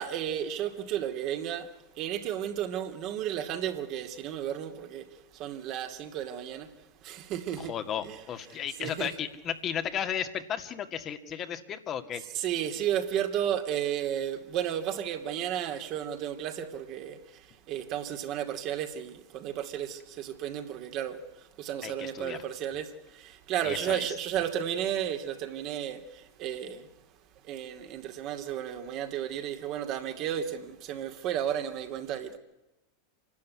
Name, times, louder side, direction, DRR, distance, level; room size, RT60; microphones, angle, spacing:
voice 1, 0.0-6.7 7.0-7.7 8.0-8.2 8.5-9.1 12.3-26.9 27.4-32.4, right 10 dB, 45° right, 2.6 m, -33 dB
voice 2, 7.6-12.2 21.8-22.4 23.6-24.1, left 9 dB, 35° left, 1.9 m, -34 dB
27.5 x 12.5 x 9.6 m
hypercardioid pair, 90°, 0 cm